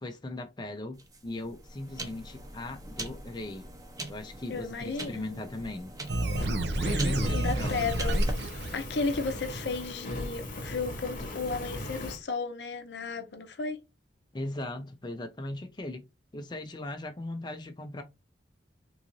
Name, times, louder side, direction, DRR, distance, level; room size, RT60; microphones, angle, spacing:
voice 1, 0.0-3.7 4.1-5.9 6.8-7.7 14.3-16.0 16.3-18.0, left 1 dB, 25° left, 0.5 m, -38 dB
sound 1, 0.9-8.3, right 1 dB, 20° right, 0.7 m, -37 dB
voice 2, 4.5-5.4 6.4-7.0 7.3-8.2 8.7-13.8, left 4 dB, 65° left, 0.7 m, -34 dB
Fire, 6.1-12.2, left 1 dB, 45° left, 1.0 m, -39 dB
sound 2, 6.1-9.4, right 1 dB, 65° right, 0.7 m, -30 dB
3.8 x 2.5 x 2.9 m
head